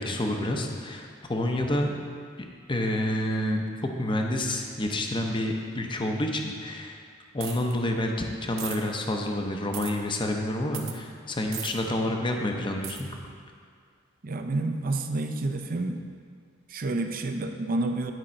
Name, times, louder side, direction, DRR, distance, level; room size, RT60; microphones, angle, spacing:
voice 1, 0.0-2.0 2.4-3.7 4.0-7.0 7.3-13.1, left 1 dB, 25° left, 2 dB, 0.7 m, -28 dB
sound 1, 7.4-7.7 8.6-8.8 9.7-9.9 10.7-11.0 11.5-11.7 12.8-13.0, right 10 dB, 75° right, 0.8 m, -36 dB
voice 2, 14.2-16.0 16.7-18.1, right 2 dB, 45° right, 6 dB, 0.5 m, -29 dB
11.0 x 5.0 x 4.3 m, 2.1 s
head